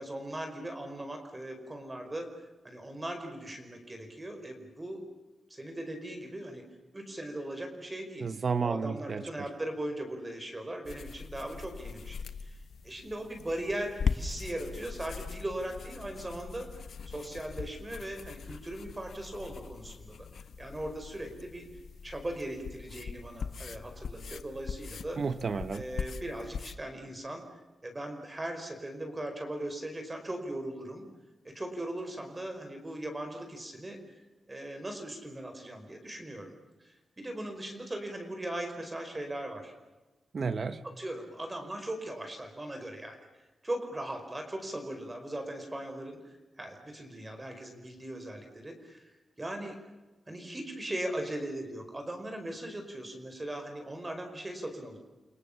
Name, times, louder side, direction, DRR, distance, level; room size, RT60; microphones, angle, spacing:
voice 1, 0.0-2.3 2.6-5.0 5.5-6.6 6.9-8.3 8.6-16.7 17.1-20.1 20.6-21.7 22.0-25.2 25.7-27.4 27.8-31.0 31.4-34.2 34.5-39.7 40.8-43.2 43.6-46.2 46.6-49.8 50.3-55.0, right 1 dB, 20° right, 5 dB, 5.0 m, -39 dB
voice 2, 8.2-9.2 25.2-25.8 40.3-40.8, right 5 dB, 50° right, 11 dB, 1.4 m, -31 dB
sound 1, 10.9-26.8, left 6 dB, 80° left, 1.2 m, -40 dB
29.5 x 25.5 x 7.3 m, 1.1 s
wide cardioid pair, 140°, 0 cm